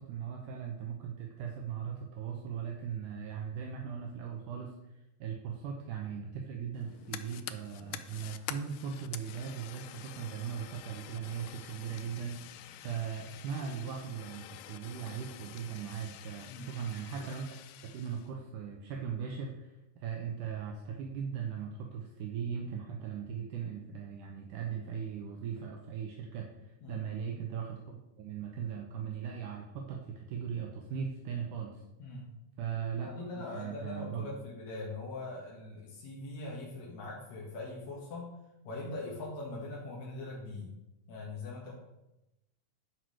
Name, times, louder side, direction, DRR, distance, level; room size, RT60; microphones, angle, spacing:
voice 1, 0.0-17.6 17.8-31.8 32.6-33.1 33.5-34.3, right 7 dB, 75° right, 1 dB, 2.3 m, -39 dB
Fire, 6.7-18.3, left 12 dB, 80° left, 2.0 m, -48 dB
voice 2, 32.0-32.3 33.0-38.3 38.6-40.7 41.1-41.7, left 2 dB, 60° left, -5 dB, 2.7 m, -42 dB
10.5 x 4.8 x 6.2 m, 0.93 s
omnidirectional pair, 3.9 m